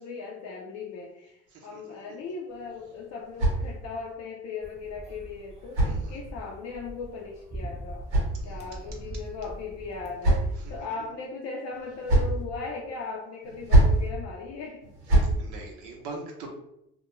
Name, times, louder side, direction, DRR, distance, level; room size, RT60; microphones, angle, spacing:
voice 1, 0.0-8.1 8.4-14.9, left 4 dB, 60° left, -2 dB, 0.5 m, -38 dB
voice 2, 1.5-2.0 5.8-6.2 8.4-9.2 10.6-10.9 15.1-16.5, right 3 dB, 70° right, 0 dB, 0.7 m, -44 dB
sound 1, 2.5-4.1 5.1-6.6 7.6-8.9 9.7-10.8 11.7-12.4 13.4-14.1 14.8-15.4, right 1 dB, 90° right, 1.1 m, -26 dB
sound 2, 4.6-10.1, right 1 dB, 20° right, 0.7 m, -42 dB
2.3 x 2.1 x 2.9 m, 0.82 s
supercardioid pair, 75°, 30 cm